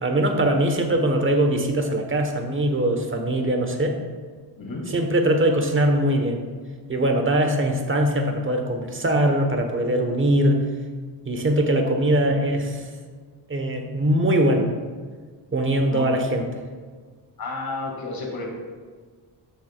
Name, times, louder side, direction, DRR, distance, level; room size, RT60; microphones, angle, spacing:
voice 1, 0.0-4.0 4.9-6.4 6.9-10.6 11.2-12.8 13.5-14.7 15.5-16.4, right 1 dB, 30° right, 4 dB, 1.2 m, -21 dB
voice 2, 17.4-18.5, left 3 dB, 60° left, -1 dB, 2.3 m, -31 dB
12.5 x 7.5 x 2.4 m, 1.5 s
cardioid pair, 100°, 42 cm